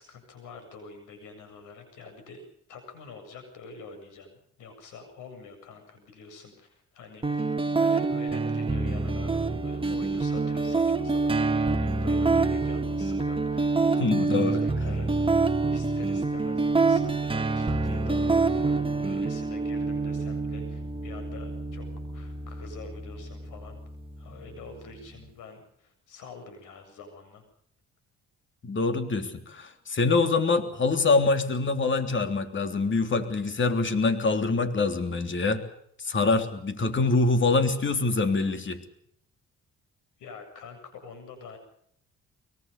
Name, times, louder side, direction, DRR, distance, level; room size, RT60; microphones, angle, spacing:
voice 1, 0.0-15.1 15.4-23.8 24.2-27.4 40.2-41.6, left 3 dB, 90° left, 8 dB, 7.8 m, -46 dB
sound 1, 7.2-25.2, right 3 dB, 15° right, 1.8 m, -27 dB
voice 2, 13.9-14.6 28.6-35.6 36.0-38.8, left 3 dB, 40° left, 8 dB, 3.4 m, -25 dB
23.5 x 23.0 x 6.8 m, 0.70 s
cardioid pair, 90°, 30 cm